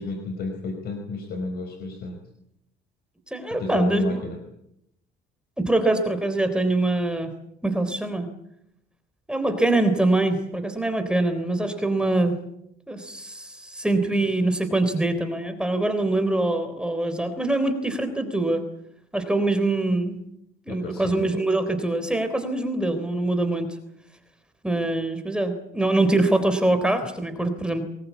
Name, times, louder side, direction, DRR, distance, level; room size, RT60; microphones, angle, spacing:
voice 1, 0.0-2.2 3.5-4.4 20.7-21.3, left 3 dB, 55° left, 6 dB, 4.5 m, -31 dB
voice 2, 3.3-4.2 5.6-7.3 7.6-8.3 9.3-12.4 12.9-18.6 19.1-20.2 20.7-23.7 24.6-27.8, right 2 dB, 5° right, 7 dB, 3.6 m, -24 dB
23.5 x 21.0 x 8.4 m, 0.77 s
cardioid pair, 120°, 20 cm